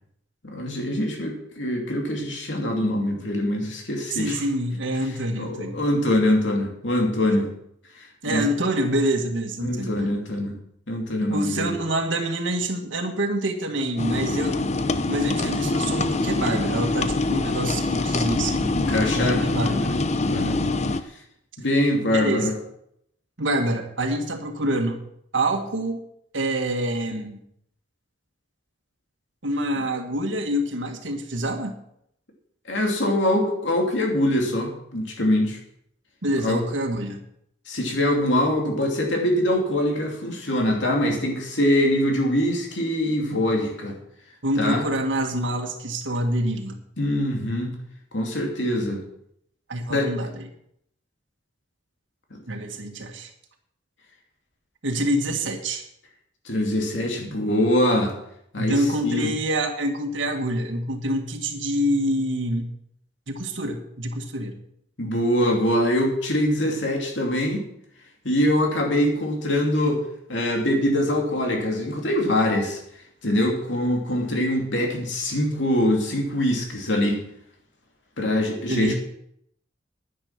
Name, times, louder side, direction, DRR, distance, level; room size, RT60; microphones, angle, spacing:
voice 1, 0.4-4.4 5.4-7.5 7.9-8.5 9.6-10.5 10.9-11.7 18.7-19.4 20.2-20.7 21.6-22.5 32.7-35.6 36.4-36.6 37.7-44.0 44.6-44.9 47.0-47.8 48.1-49.0 49.9-50.1 56.4-58.1 58.5-59.3 65.0-67.7 68.2-70.0 70.3-72.8 73.2-77.2 78.2-78.9, left 1 dB, 70° left, 1 dB, 2.8 m, -23 dB
voice 2, 4.1-5.8 8.2-9.9 11.3-14.7 15.1-20.0 22.1-22.6 23.4-25.0 25.3-26.0 26.3-27.4 29.4-31.8 36.2-37.2 44.4-46.8 49.7-50.5 52.5-53.3 54.8-55.9 58.6-62.7 63.3-64.5 78.7-78.9, right 1 dB, 90° right, 3 dB, 1.7 m, -26 dB
sound 1, 14.0-21.0, left 2 dB, 35° left, 0.7 m, -24 dB
10.5 x 10.0 x 6.0 m, 0.73 s
head